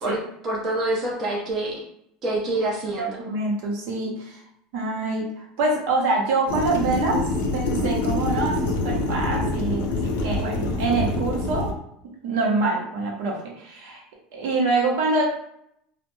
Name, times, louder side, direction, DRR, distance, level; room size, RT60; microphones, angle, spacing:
voice 1, 0.0-1.8 2.2-3.2, right 2 dB, 30° right, -4 dB, 0.6 m, -26 dB
voice 2, 3.0-4.4 4.7-7.2 7.5-11.7 12.2-14.0 14.3-15.2, right 3 dB, 65° right, -1 dB, 0.7 m, -25 dB
sound 1, 6.5-11.7, left 2 dB, 75° left, 0.5 m, -25 dB
2.2 x 2.1 x 3.0 m, 0.75 s
cardioid pair, 170°, 0 cm